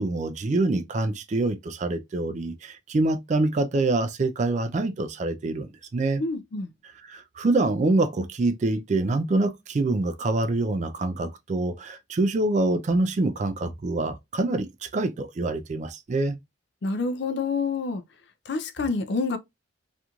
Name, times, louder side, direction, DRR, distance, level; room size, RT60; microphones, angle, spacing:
voice 1, 0.0-6.2 7.1-16.4, right 2 dB, 35° right, 0.3 m, -25 dB
voice 2, 6.2-6.7 16.8-18.0 18.5-19.4, left 4 dB, 55° left, 0.4 m, -27 dB
2.9 x 2.5 x 2.3 m
head